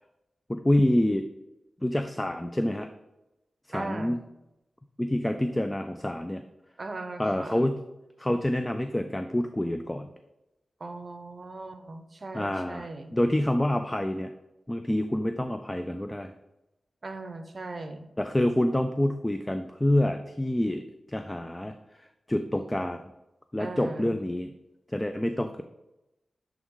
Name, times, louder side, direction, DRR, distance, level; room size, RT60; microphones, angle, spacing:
voice 1, 0.5-1.3 1.8-2.9 3.7-4.2 5.0-6.4 7.2-7.8 8.2-10.1 12.3-14.3 14.7-16.3 18.2-20.8 21.1-21.7 22.3-23.0 23.5-24.5 24.9-25.6, left 1 dB, 15° left, 8 dB, 0.3 m, -27 dB
voice 2, 3.7-4.2 6.8-7.6 10.8-13.1 17.0-18.1 23.6-24.2, right 2 dB, 40° right, 7 dB, 0.7 m, -39 dB
7.5 x 3.6 x 3.6 m, 0.94 s
wide cardioid pair, 85°, 0 cm